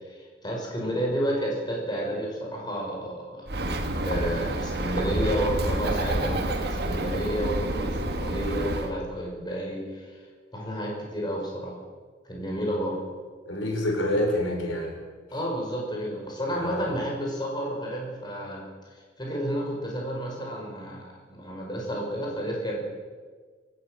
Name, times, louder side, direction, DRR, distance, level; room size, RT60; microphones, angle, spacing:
voice 1, 0.1-10.2 10.5-11.8 12.2-12.9 15.3-18.6 19.2-22.8, equal, 25° left, -2 dB, 5.5 m, -31 dB
Bird, 3.5-8.9, right 1 dB, 55° right, 2.1 m, -28 dB
voice 2, 13.5-15.0 16.5-16.9, left 1 dB, 90° left, 1 dB, 5.3 m, -27 dB
24.0 x 13.5 x 8.1 m, 1.5 s
head